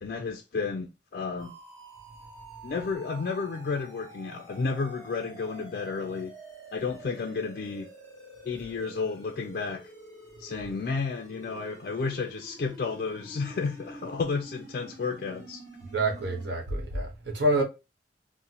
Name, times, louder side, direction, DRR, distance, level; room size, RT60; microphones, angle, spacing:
voice 1, 0.0-1.5 2.6-6.3 6.7-7.9 8.4-9.9 10.4-15.6, left 4 dB, 50° left, 0.3 m, -32 dB
sound 1, 1.4-16.5, right 2 dB, 40° right, 1.1 m, -48 dB
voice 2, 15.9-17.6, right 1 dB, 70° right, 0.9 m, -27 dB
3.9 x 2.0 x 2.8 m
head